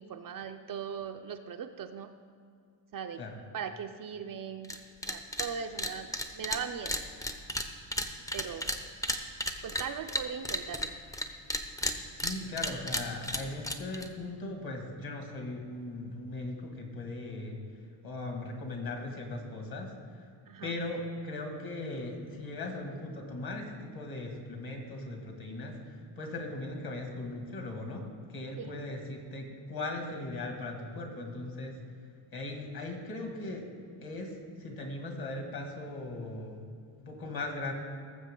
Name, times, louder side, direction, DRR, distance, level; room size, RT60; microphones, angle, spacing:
voice 1, 0.0-2.1 2.9-3.2 3.5-4.7 5.1-7.0 8.3-8.7 9.6-11.0 20.5-20.7 28.6-28.7, right 7 dB, 45° right, 7 dB, 0.5 m, -39 dB
sound 1, 4.6-4.8 5.0-5.5 5.8-11.2 11.5-14.1, left 1 dB, 5° left, 0.6 m, -33 dB
voice 2, 12.1-17.6 18.0-20.3 20.6-31.9 32.3-33.7 34.0-36.6 37.0-37.7, left 2 dB, 45° left, 2 dB, 2.0 m, -39 dB
18.5 x 7.4 x 3.7 m, 2.3 s
cardioid pair, 140°, 48 cm